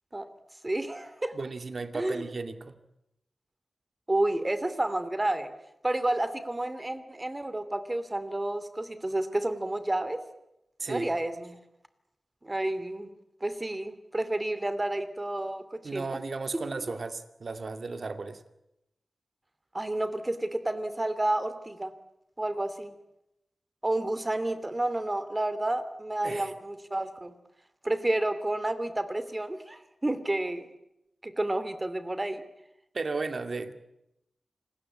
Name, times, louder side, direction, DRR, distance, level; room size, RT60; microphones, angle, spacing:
voice 1, 0.6-1.3 1.9-2.2 4.1-5.5 5.8-10.2 10.9-11.6 12.4-13.1 13.4-16.1 16.8-16.9 19.7-21.9 22.4-22.9 23.8-27.3 27.8-30.7 31.2-32.4, right 1 dB, 20° right, 12 dB, 2.7 m, -30 dB
voice 2, 1.3-2.8 10.8-11.1 15.8-18.4 26.2-26.5 32.9-33.7, right 3 dB, 60° right, 9 dB, 2.3 m, -35 dB
28.0 x 20.5 x 8.6 m, 0.86 s
wide cardioid pair, 95°, 0 cm